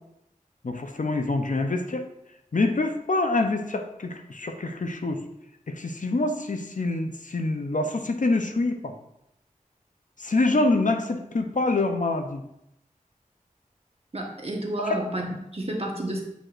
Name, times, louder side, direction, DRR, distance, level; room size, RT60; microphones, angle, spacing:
voice 1, 0.6-2.1 2.5-5.2 5.7-8.9 10.2-12.4 14.8-15.0, left 2 dB, 65° left, 6 dB, 0.7 m, -26 dB
voice 2, 14.1-16.2, right 1 dB, 45° right, 0 dB, 1.2 m, -30 dB
8.1 x 5.0 x 2.5 m, 0.82 s
wide cardioid pair, 55°, 14 cm